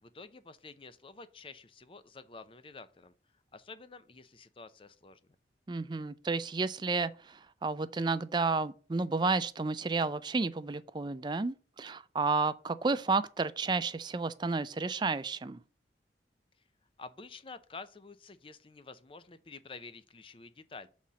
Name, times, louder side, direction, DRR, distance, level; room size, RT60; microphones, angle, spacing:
voice 1, 0.0-3.1 3.5-5.4 17.0-20.9, left 4 dB, 30° left, 0.6 m, -49 dB
voice 2, 5.7-15.6, right 3 dB, 25° right, 0.4 m, -31 dB
5.7 x 4.2 x 6.2 m
head